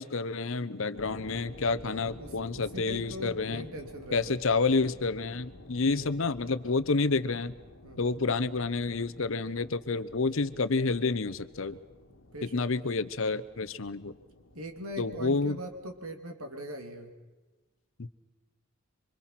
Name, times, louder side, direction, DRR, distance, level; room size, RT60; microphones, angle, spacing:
voice 1, 0.0-3.7 4.1-7.5 8.0-11.8 12.5-14.1 15.0-15.6 18.0-18.1, left 3 dB, 60° left, 13 dB, 0.8 m, -29 dB
sound 1, 0.9-16.1, left 1 dB, 75° left, 1.6 m, -51 dB
voice 2, 1.8-4.3 5.7-6.1 7.8-8.1 12.3-12.6 14.5-17.1, equal, 75° right, 5 dB, 2.9 m, -41 dB
26.0 x 25.5 x 5.9 m, 1.2 s
head